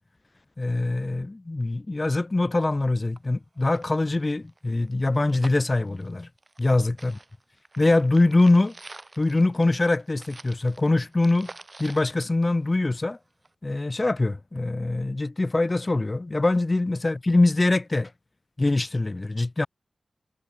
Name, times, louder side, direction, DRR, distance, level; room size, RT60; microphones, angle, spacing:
voice 1, 0.6-6.3 6.6-7.1 7.8-8.7 9.2-11.5 11.8-13.2 13.6-18.1 18.6-19.7, left 2 dB, 35° left, 0.3 m, -23 dB
sound 1, 2.8-2.9 3.2-3.3 3.6-6.7 7.0-13.1 13.4-13.5, right 2 dB, 35° right, 4.7 m, -47 dB
wide cardioid pair, 60°, 0 cm